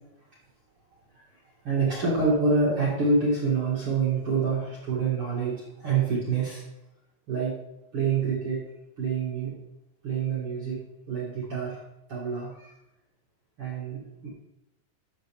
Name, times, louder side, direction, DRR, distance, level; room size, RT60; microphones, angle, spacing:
voice 1, 1.6-6.6 7.3-7.6 7.9-8.6 9.0-9.6 10.0-11.8 12.1-12.7 13.6-14.3, right 4 dB, 75° right, -7 dB, 1.2 m, -27 dB
11.5 x 6.4 x 3.4 m, 0.88 s
omnidirectional pair, 5.5 m